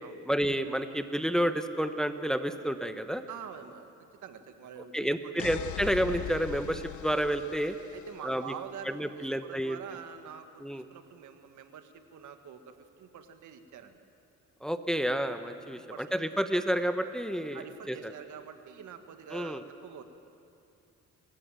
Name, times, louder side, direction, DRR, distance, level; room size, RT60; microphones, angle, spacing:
voice 1, 0.3-3.2 4.9-7.8 8.2-8.5 8.9-9.8 10.6-10.8 14.6-17.6 17.9-18.1 19.3-19.6, equal, ahead, 8 dB, 1.1 m, -30 dB
voice 2, 3.3-5.0 5.2-5.3 7.9-14.0 15.7-16.4 17.5-20.0, right 8 dB, 75° right, 7 dB, 1.8 m, -46 dB
sound 1, 5.4-8.3, left 11 dB, 75° left, 0.8 m, -40 dB
28.5 x 15.5 x 9.1 m, 2.6 s
cardioid pair, 90°, 30 cm